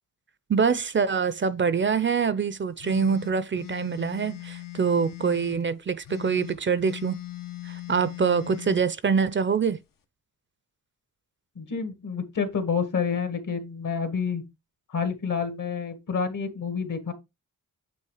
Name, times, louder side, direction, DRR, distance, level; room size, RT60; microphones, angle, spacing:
voice 1, 0.5-7.2 7.6-9.8, right 6 dB, 35° right, 0.5 m, -25 dB
sound 1, 2.8-5.6 6.0-8.8, left 16 dB, 85° left, 1.1 m, -40 dB
voice 2, 11.6-14.4 14.9-17.1, left 6 dB, 70° left, 1.9 m, -28 dB
8.6 x 3.2 x 4.8 m
wide cardioid pair, 125°, 32 cm